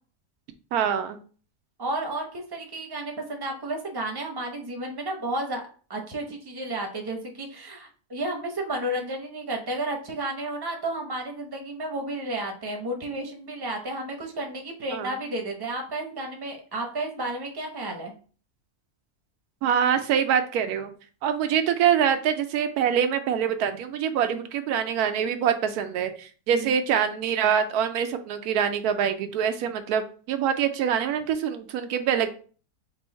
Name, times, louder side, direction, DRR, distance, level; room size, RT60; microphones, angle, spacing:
voice 1, 0.7-1.2 14.9-15.1 19.6-20.9 21.2-32.3, right 8 dB, 85° right, 8 dB, 1.1 m, -25 dB
voice 2, 1.8-5.6 5.9-18.1 26.5-26.7, right 1 dB, 20° right, 3 dB, 0.6 m, -32 dB
3.7 x 2.7 x 4.3 m, 0.40 s
omnidirectional pair, 1.6 m